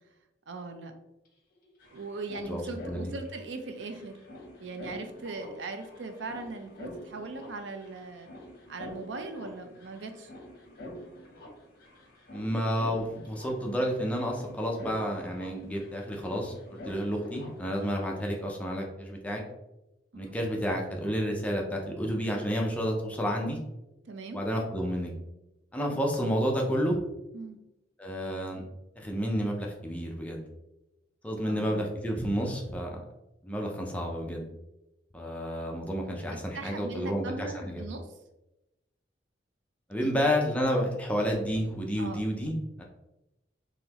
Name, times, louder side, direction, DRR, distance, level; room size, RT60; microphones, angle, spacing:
voice 1, 0.5-0.9 1.9-4.2 4.6-8.3 8.7-10.3 20.1-20.4 24.1-24.4 27.3-27.6 31.4-31.9 36.3-38.1 40.0-40.1 42.0-42.3, right 3 dB, 85° right, 7 dB, 0.5 m, -39 dB
sound 1, 1.2-1.3 1.5-18.3, left 1 dB, 55° left, 0.9 m, -47 dB
voice 2, 2.5-3.1 12.3-19.4 20.1-23.6 24.3-25.1 25.7-27.0 28.0-28.6 29.0-30.4 31.2-32.9 33.4-34.5 35.1-37.8 39.9-42.8, equal, 10° left, 0 dB, 0.5 m, -30 dB
3.9 x 3.0 x 2.9 m, 0.96 s
head